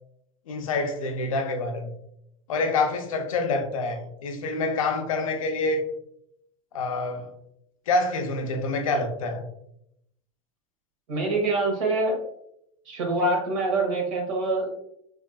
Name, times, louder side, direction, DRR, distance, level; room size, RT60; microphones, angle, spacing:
voice 1, 0.5-1.9 2.5-5.8 6.7-7.3 7.9-9.5, left 3 dB, 80° left, 0.6 m, -27 dB
voice 2, 11.1-12.2 12.8-14.7, right 2 dB, 75° right, 1.2 m, -25 dB
3.5 x 2.5 x 2.2 m
hypercardioid pair, 90°, 17 cm